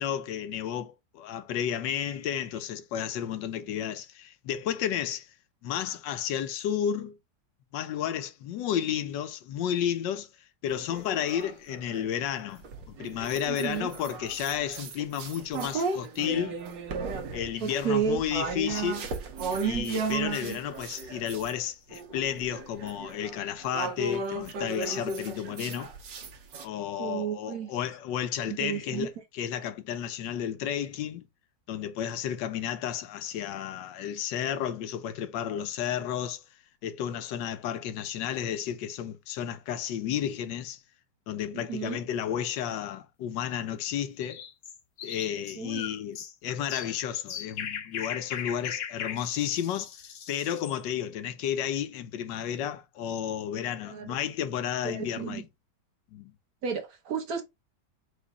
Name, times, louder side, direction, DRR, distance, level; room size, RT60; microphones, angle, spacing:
voice 1, 0.0-5.3 5.6-7.2 7.7-10.3 10.6-12.6 13.0-16.6 17.3-19.1 19.6-25.9 26.6-29.1 29.4-31.2 31.7-36.4 36.8-40.8 41.3-44.4 45.0-49.9 50.3-55.4 56.1-56.3, left 9 dB, 90° left, 1.3 m, -32 dB
sound 1, 10.7-12.1 12.6-21.5 21.9-26.7, right 4 dB, 85° right, 1.6 m, -35 dB
voice 2, 13.5-13.9 17.6-18.2 27.0-27.7 28.4-29.1 41.5-42.0 45.6-45.8 53.9-54.2 54.8-55.4 56.6-57.4, right 7 dB, 60° right, 1.4 m, -32 dB
sound 2, 44.2-50.8, left 8 dB, 60° left, 0.8 m, -38 dB
5.0 x 2.4 x 4.0 m
omnidirectional pair, 1.9 m